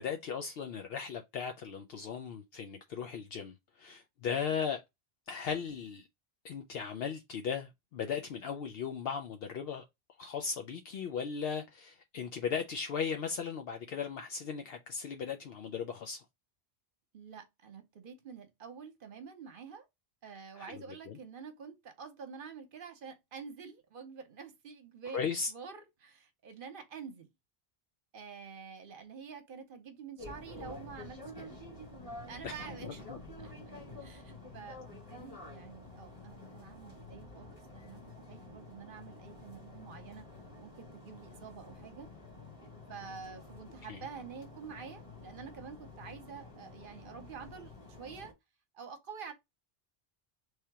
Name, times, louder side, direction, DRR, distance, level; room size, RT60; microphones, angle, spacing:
voice 1, 0.0-4.8 5.3-6.1 6.4-9.8 10.2-16.2 20.6-21.2 25.1-25.5 32.4-32.5 33.1-33.2 43.9-44.0, left 6 dB, 70° left, 0.8 m, -37 dB
voice 2, 4.3-4.6 17.1-19.9 20.2-27.3 28.1-31.6 32.3-33.0 33.4-33.5 34.0-38.0 38.3-40.3 40.6-42.1 42.9-47.7 48.0-48.3 48.7-49.3, right 6 dB, 60° right, 1.0 m, -48 dB
sound 1, 30.2-48.3, left 2 dB, 35° left, 1.2 m, -49 dB
3.3 x 2.8 x 4.6 m
omnidirectional pair, 1.1 m